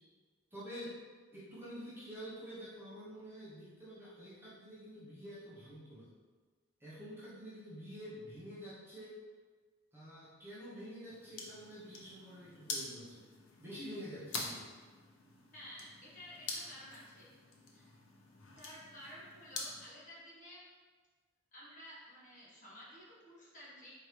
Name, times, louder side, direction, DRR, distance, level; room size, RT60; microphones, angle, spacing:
voice 1, 0.5-1.0 1.3-6.1 6.8-9.2 9.9-13.3 13.6-14.7, equal, 10° right, -10 dB, 0.9 m, -48 dB
sound 1, 11.1-19.9, left 3 dB, 80° left, 0.7 m, -46 dB
voice 2, 15.5-17.3 17.7-17.9 18.6-20.6 21.5-23.9, equal, 35° left, -7 dB, 1.3 m, -53 dB
4.4 x 3.6 x 3.2 m, 1.4 s
head